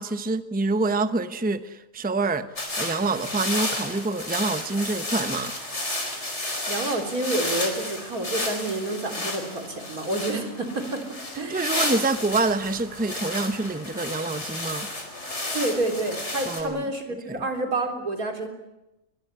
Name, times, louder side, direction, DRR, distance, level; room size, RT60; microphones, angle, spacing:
voice 1, 0.0-5.5 11.5-14.9 16.4-16.8 17.3-17.4, right 3 dB, 10° right, 11 dB, 0.8 m, -26 dB
sound 1, 2.6-16.6, left 1 dB, 50° left, 5.0 m, -32 dB
voice 2, 6.7-11.7 15.5-18.5, right 2 dB, 80° right, 4 dB, 4.3 m, -29 dB
23.0 x 22.0 x 9.9 m, 0.96 s
omnidirectional pair, 1.5 m